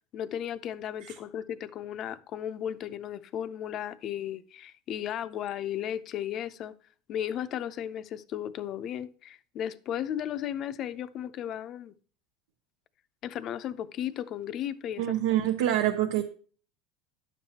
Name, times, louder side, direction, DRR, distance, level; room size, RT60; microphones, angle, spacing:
voice 1, 0.1-6.7 7.1-11.9 13.2-15.0, left 10 dB, 40° left, 0.5 m, -35 dB
voice 2, 15.0-16.2, right 12 dB, 85° right, 0.6 m, -26 dB
10.0 x 7.2 x 2.8 m
cardioid pair, 145°, 0 cm